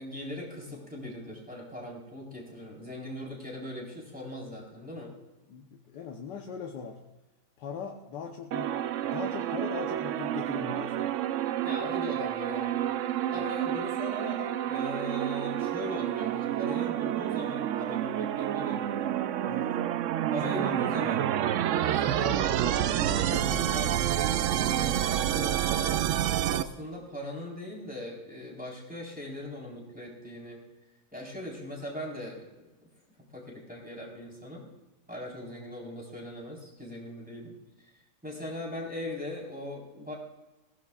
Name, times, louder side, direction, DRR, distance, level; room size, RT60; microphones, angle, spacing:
voice 1, 0.0-5.1 11.6-12.7 13.3-19.1 20.3-21.3 21.8-26.0 26.5-30.6 31.1-32.5 33.3-34.7 35.1-40.1, left 1 dB, 5° right, -4 dB, 4.0 m, -40 dB
voice 2, 5.5-7.0 7.6-8.8 9.0-11.1 13.4-13.5 19.5-19.7 20.4-21.1, left 6 dB, 80° left, 3 dB, 1.6 m, -40 dB
sound 1, 8.5-26.6, right 11 dB, 80° right, 0.7 m, -29 dB
21.0 x 16.5 x 2.4 m, 1.1 s
omnidirectional pair, 1.8 m